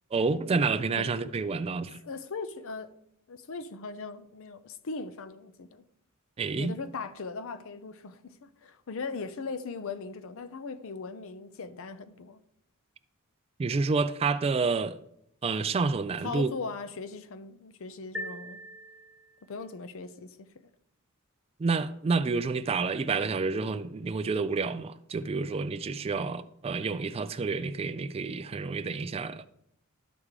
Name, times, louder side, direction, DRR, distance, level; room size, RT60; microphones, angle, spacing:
voice 1, 0.1-2.0 6.4-6.7 13.6-15.0 15.4-16.5 21.6-29.5, right 4 dB, 25° right, 0.3 m, -29 dB
voice 2, 2.0-2.9 3.3-5.8 6.6-12.4 16.2-18.6 19.4-20.5, left 4 dB, 65° left, 0.6 m, -39 dB
sound 1, 18.1-19.6, equal, ahead, 0.8 m, -41 dB
12.0 x 4.8 x 3.7 m
head